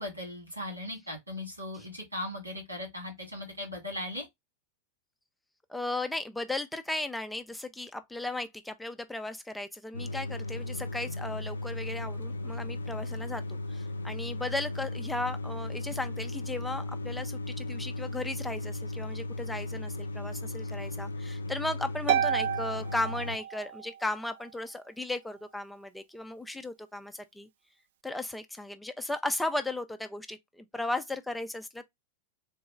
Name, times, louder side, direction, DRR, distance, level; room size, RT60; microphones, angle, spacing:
voice 1, 0.0-4.3, left 1 dB, 85° right, 2.7 m, -38 dB
voice 2, 5.7-27.5 28.0-31.8, left 2 dB, 5° left, 0.5 m, -36 dB
sound 1, 9.9-23.4, left 2 dB, 75° left, 0.4 m, -36 dB
Harp, 22.1-24.0, right 9 dB, 55° right, 0.4 m, -30 dB
4.0 x 3.0 x 3.7 m
figure-of-eight pair, 90°, 0 cm